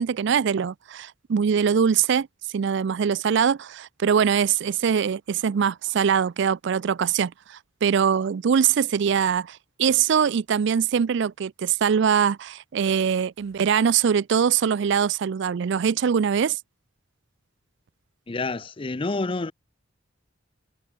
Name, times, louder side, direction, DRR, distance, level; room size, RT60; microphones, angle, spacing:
voice 1, 0.0-16.6, right 7 dB, 60° right, 0.4 m, -23 dB
voice 2, 18.3-19.5, left 3 dB, 25° left, 0.5 m, -28 dB
head